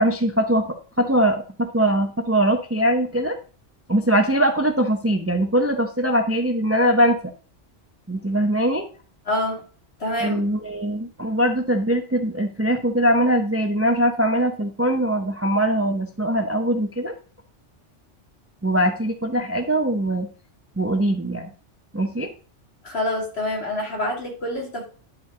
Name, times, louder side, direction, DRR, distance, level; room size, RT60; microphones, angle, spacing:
voice 1, 0.0-3.4 3.9-7.2 8.1-8.9 10.2-17.1 18.6-20.3 20.8-21.5 21.9-22.3, right 1 dB, 15° right, 6 dB, 0.5 m, -21 dB
voice 2, 9.3-9.6 10.0-10.4 22.8-24.9, left 1 dB, 55° left, -1 dB, 2.7 m, -26 dB
10.5 x 4.5 x 3.7 m, 0.40 s
omnidirectional pair, 1.2 m